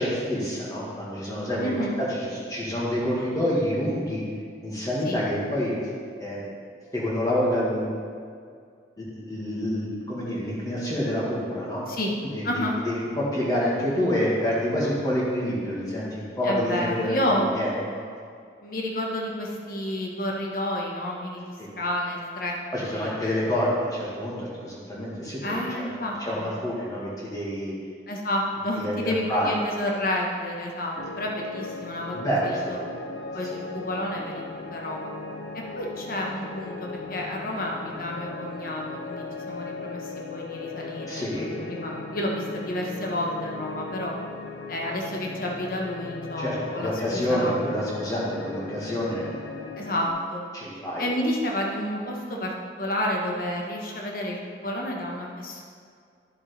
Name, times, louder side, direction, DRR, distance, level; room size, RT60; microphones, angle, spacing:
voice 1, 0.0-1.7 2.0-4.2 4.6-5.7 6.2-6.4 6.9-7.9 9.0-11.8 12.3-17.3 17.5-18.0 21.6-21.7 22.7-25.9 26.2-27.7 28.8-29.5 32.1-32.7 33.5-33.6 41.1-41.5 46.4-49.3 50.5-51.1, equal, 20° left, -7 dB, 2.0 m, -27 dB
voice 2, 1.6-2.0 5.0-5.2 11.9-12.1 12.4-12.7 16.4-17.6 18.6-23.4 25.4-26.5 28.1-32.2 32.4-32.8 33.3-34.4 34.7-35.1 35.5-44.1 44.7-47.7 49.8-50.4 51.0-52.5 52.8-55.6, left 1 dB, 50° left, -1 dB, 1.3 m, -30 dB
sound 1, 31.0-50.1, left 3 dB, 65° left, 0.9 m, -38 dB
11.5 x 7.1 x 3.4 m, 2.2 s
head